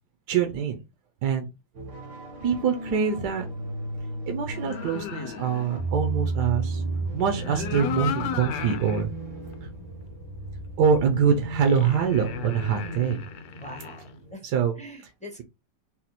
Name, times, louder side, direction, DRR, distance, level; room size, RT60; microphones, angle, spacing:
voice 1, 0.3-0.8 1.2-1.5 2.4-3.4 4.3-6.8 7.1-9.1 10.8-13.2 14.4-14.8, right 7 dB, 70° right, 1.2 m, -24 dB
sound 1, 1.8-14.3, right 2 dB, 85° right, 2.0 m, -34 dB
sound 2, 4.6-5.7 7.2-9.0 9.5-9.6 11.5-14.1, left 9 dB, 85° left, 1.3 m, -35 dB
voice 2, 12.8-13.2 13.6-14.0 14.3-14.4 14.8-15.4, left 1 dB, 5° left, 0.8 m, -41 dB
4.2 x 2.3 x 4.0 m
omnidirectional pair, 2.0 m